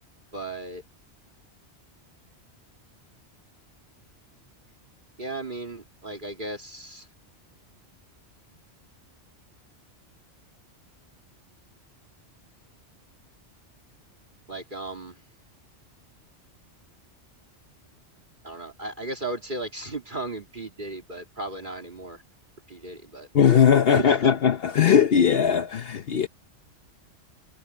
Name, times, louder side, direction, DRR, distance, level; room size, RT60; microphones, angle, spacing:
voice 1, 0.3-0.8 5.2-7.1 14.5-15.2 18.4-22.2 22.7-23.3 23.9-24.2, right 2 dB, 45° right, 2.8 m, -35 dB
voice 2, 23.3-26.3, left 8 dB, 60° left, 0.9 m, -19 dB
omnidirectional pair, 1.2 m